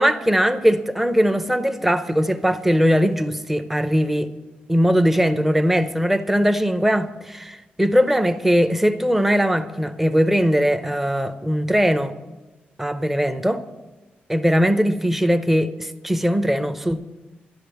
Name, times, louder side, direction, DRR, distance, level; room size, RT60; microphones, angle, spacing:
voice 1, 0.0-4.3 4.7-12.1 12.8-13.6 14.3-17.0, equal, 5° right, 0.6 m, -20 dB
12.0 x 11.0 x 6.9 m
wide cardioid pair, 150°, 4 cm